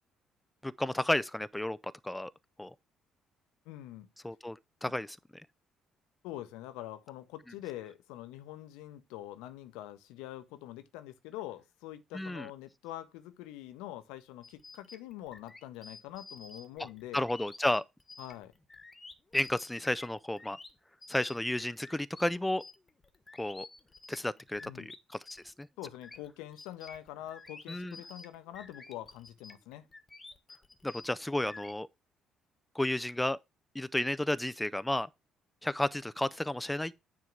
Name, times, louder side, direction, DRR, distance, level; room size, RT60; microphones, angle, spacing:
voice 1, 0.6-1.8 2.0-2.3 2.6-2.7 4.2-5.4 12.1-12.5 17.1-17.8 19.3-20.6 21.1-22.6 23.4-23.7 24.1-24.9 25.3-25.7 27.7-28.0 30.8-31.9 32.8-33.4 33.7-35.1 35.6-36.9, left 1 dB, 10° left, 0.4 m, -32 dB
voice 2, 3.7-4.1 6.2-17.3 18.2-18.5 24.6-24.9 25.8-29.9, left 14 dB, 70° left, 0.8 m, -45 dB
sound 1, 14.4-25.0 25.2-31.7, left 3 dB, 25° left, 1.3 m, -51 dB
9.6 x 3.6 x 5.8 m
hypercardioid pair, 45°, 0 cm